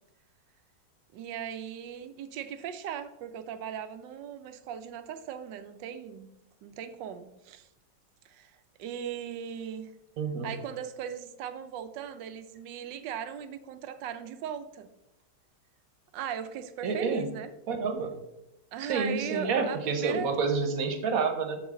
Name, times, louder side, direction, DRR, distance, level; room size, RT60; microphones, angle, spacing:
voice 1, 1.1-6.3 6.6-7.7 8.2-9.9 10.4-14.9 16.1-17.5 18.7-20.4, right 8 dB, 80° right, 11 dB, 1.3 m, -38 dB
voice 2, 10.2-10.5 16.8-17.3 17.7-18.1 18.8-21.6, right 4 dB, 55° right, 6 dB, 1.3 m, -29 dB
7.2 x 7.0 x 3.7 m, 0.93 s
omnidirectional pair, 1.9 m